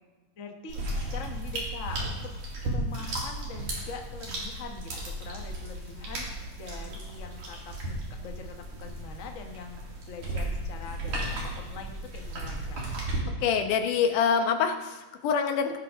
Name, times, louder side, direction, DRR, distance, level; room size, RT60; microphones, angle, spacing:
voice 1, 0.4-0.8 1.1-2.3 2.6-9.8 10.1-12.8, left 5 dB, 55° left, 3 dB, 0.8 m, -43 dB
sound 1, 0.7-13.2, right 1 dB, 80° right, 4.7 m, -35 dB
voice 2, 13.4-15.8, left 6 dB, 90° left, 5 dB, 2.7 m, -25 dB
17.5 x 12.5 x 3.7 m, 1.3 s
omnidirectional pair, 3.5 m